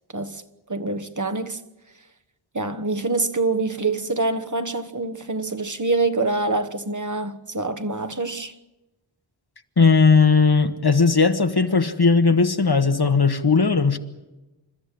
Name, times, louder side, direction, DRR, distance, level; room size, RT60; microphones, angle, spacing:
voice 1, 0.7-1.6 2.5-8.5, right 3 dB, 40° right, 1.4 m, -25 dB
voice 2, 9.8-14.0, left 4 dB, 55° left, 1.5 m, -17 dB
29.0 x 13.5 x 9.9 m
wide cardioid pair, 50°, 47 cm